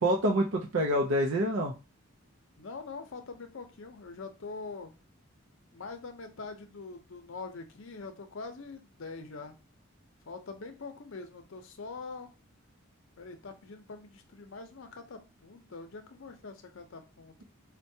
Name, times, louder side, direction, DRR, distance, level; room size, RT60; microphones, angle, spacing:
voice 1, 0.0-1.7, right 1 dB, 70° right, 0 dB, 0.5 m, -26 dB
voice 2, 2.6-4.9 5.7-9.5 10.3-12.3 13.2-17.4, left 4 dB, 65° left, 7 dB, 0.6 m, -44 dB
4.4 x 2.2 x 2.7 m, 0.29 s
head